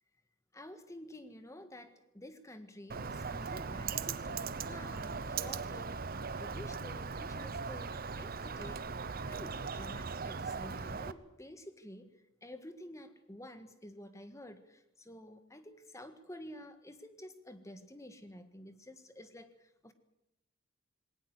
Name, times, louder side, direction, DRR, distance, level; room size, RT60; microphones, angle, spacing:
voice 1, 0.5-6.0 6.4-7.9 8.2-8.9 9.3-12.1 12.4-19.9, left 1 dB, 15° left, 9 dB, 1.6 m, -50 dB
Bird, 2.9-11.1, right 5 dB, 45° right, 0.8 m, -39 dB
20.5 x 18.0 x 8.2 m, 0.84 s
head